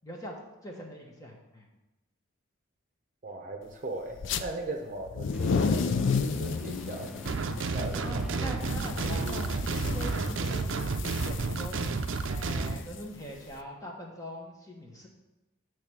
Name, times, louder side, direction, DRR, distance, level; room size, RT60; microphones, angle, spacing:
voice 1, 0.0-0.3 0.6-1.7 8.0-9.5 9.8-11.8 12.3-15.1, equal, 15° left, -1 dB, 1.1 m, -42 dB
voice 2, 3.2-7.1 7.7-8.5 9.1-9.3, right 2 dB, 40° right, 2 dB, 0.7 m, -39 dB
sound 1, 4.2-4.4 5.0-13.5, left 5 dB, 65° left, 0.4 m, -33 dB
sound 2, 5.3-10.6, equal, 5° right, 0.4 m, -44 dB
sound 3, 7.3-12.8, right 4 dB, 70° right, 0.5 m, -31 dB
8.6 x 3.3 x 6.1 m, 0.99 s
head